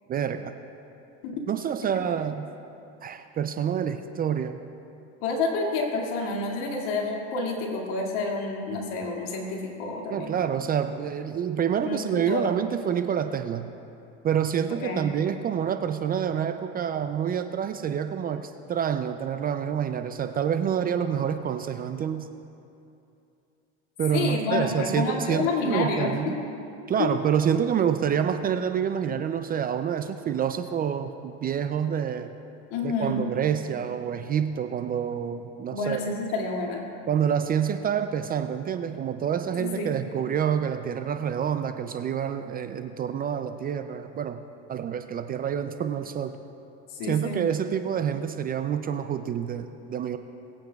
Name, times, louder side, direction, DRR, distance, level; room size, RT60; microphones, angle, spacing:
voice 1, 0.1-0.5 1.5-2.5 3.0-4.6 10.1-13.7 14.2-22.3 24.0-26.3 26.9-32.3 32.8-36.0 37.1-44.4 44.7-46.4 47.1-50.2, right 8 dB, 25° right, 9 dB, 0.4 m, -27 dB
voice 2, 5.2-10.3 11.8-12.5 14.7-15.1 24.1-26.4 27.0-27.1 32.7-33.2 35.7-36.9 39.6-40.0 46.9-47.5, left 3 dB, 65° left, -1 dB, 2.3 m, -29 dB
21.5 x 8.7 x 2.3 m, 2.7 s
supercardioid pair, 105°, 35 cm